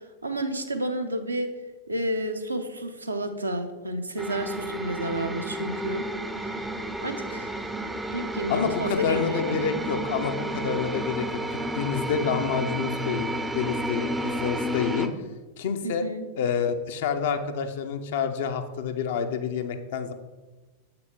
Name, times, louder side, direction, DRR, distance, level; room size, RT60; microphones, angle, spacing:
voice 1, 0.2-1.5 1.9-6.0 6.4-6.6 7.0-7.6 8.1-9.6 15.8-16.3, right 1 dB, 80° right, 5 dB, 0.7 m, -30 dB
sound 1, 4.2-15.1, right 1 dB, 5° right, 0.5 m, -31 dB
voice 2, 8.5-15.1 15.6-16.0 16.4-20.1, left 6 dB, 55° left, 7 dB, 0.6 m, -28 dB
7.7 x 5.8 x 3.7 m, 1.3 s
figure-of-eight pair, 90°, 0 cm